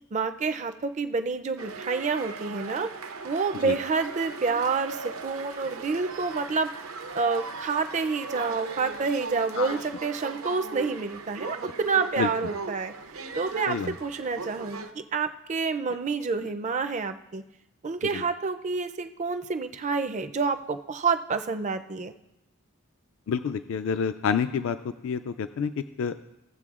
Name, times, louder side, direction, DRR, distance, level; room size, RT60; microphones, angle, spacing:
voice 1, 0.1-2.9 3.2-6.7 7.2-12.9 13.4-17.4 17.8-22.1, right 4 dB, 35° right, 9 dB, 0.4 m, -28 dB
sound 1, 1.6-14.9, right 4 dB, 80° right, 0.7 m, -38 dB
voice 2, 23.3-26.2, left 6 dB, 65° left, 11 dB, 0.3 m, -28 dB
17.0 x 7.5 x 2.4 m, 0.91 s
head